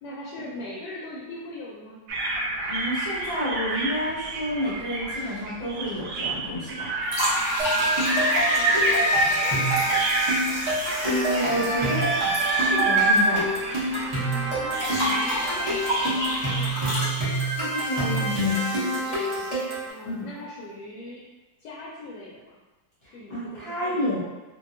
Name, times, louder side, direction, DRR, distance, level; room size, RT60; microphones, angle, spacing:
voice 1, 0.0-2.0 7.6-10.2 14.1-17.1 18.9-21.2 21.6-22.6 23.1-24.1, left 1 dB, 75° left, -5 dB, 1.1 m, -41 dB
sound 1, 2.1-16.7, right 1 dB, 75° right, 1.1 m, -27 dB
voice 2, 2.7-6.9 10.7-12.1 12.4-13.5 17.5-18.6 20.0-20.3 23.0-24.2, equal, 45° left, -9 dB, 0.9 m, -30 dB
sound 2, 7.1-13.2 13.5-13.6 14.7-19.7, equal, 25° left, 0.4 m, -32 dB
sound 3, 7.6-19.9, right 1 dB, 40° right, 0.4 m, -27 dB
2.7 x 2.7 x 2.5 m, 1.1 s
omnidirectional pair, 2.0 m